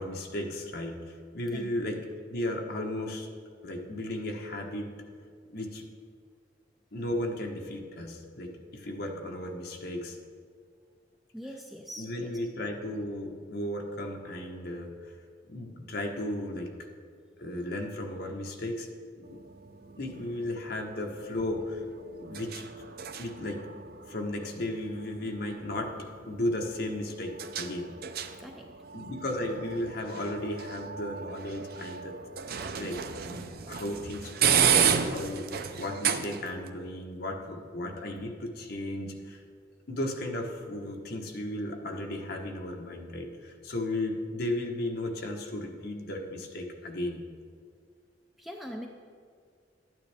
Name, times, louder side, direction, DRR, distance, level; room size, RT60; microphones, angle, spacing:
voice 1, 0.0-3.3 3.6-4.9 5.5-5.8 6.9-10.2 12.0-15.1 15.5-16.9 17.4-18.9 19.1-19.4 20.0-21.8 22.2-22.7 23.2-23.7 24.1-28.0 28.9-32.2 32.5-33.0 33.3-39.4 39.9-47.2, left 1 dB, 55° left, 1 dB, 1.1 m, -35 dB
voice 2, 11.3-12.3 28.4-28.7 32.6-32.7 48.4-48.9, equal, ahead, 1 dB, 0.4 m, -42 dB
sound 1, 19.2-36.7, right 7 dB, 55° right, 0.5 m, -33 dB
12.0 x 9.2 x 3.4 m, 2.1 s
head